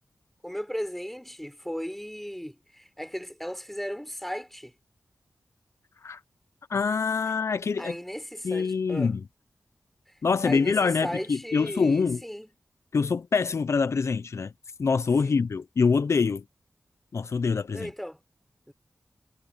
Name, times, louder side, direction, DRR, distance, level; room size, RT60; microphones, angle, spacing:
voice 1, 0.4-4.7 7.8-9.1 10.1-10.2 10.4-12.5 15.2-15.4 17.7-18.2 18.7-18.8, equal, 5° left, 3.8 m, -36 dB
voice 2, 6.7-8.0 8.4-9.2 10.2-12.2 12.9-14.5 14.8-16.4 17.1-17.9, left 5 dB, 70° left, 0.6 m, -25 dB
wide cardioid pair, 70°, 5 cm